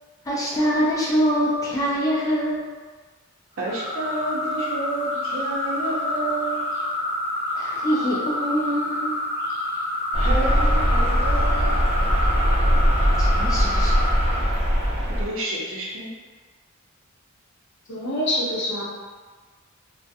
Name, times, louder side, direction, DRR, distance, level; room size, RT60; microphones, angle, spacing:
voice 1, 0.3-2.6 7.5-9.2 13.2-14.1, equal, 15° left, -6 dB, 0.3 m, -24 dB
sound 1, 3.6-14.5, left 1 dB, 45° right, 1.0 m, -28 dB
voice 2, 3.6-6.8 10.2-11.8 15.2-16.1, right 2 dB, 65° right, -5 dB, 0.6 m, -30 dB
sound 2, 10.1-15.3, equal, 25° right, 0.6 m, -20 dB
voice 3, 17.9-18.8, left 1 dB, 55° left, -6 dB, 0.7 m, -25 dB
2.4 x 2.1 x 2.6 m, 1.4 s
head